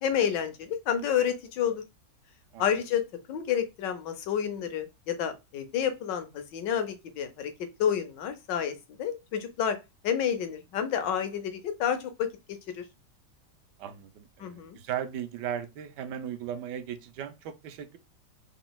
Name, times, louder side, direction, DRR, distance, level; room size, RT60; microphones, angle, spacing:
voice 1, 0.0-1.8 2.6-3.0 3.3-7.5 7.8-9.8 10.0-12.3 12.7-12.8 14.4-14.8, left 8 dB, 90° left, 1.5 m, -29 dB
voice 2, 13.8-18.0, right 9 dB, 85° right, 1.2 m, -37 dB
3.9 x 3.9 x 2.2 m
omnidirectional pair, 1.9 m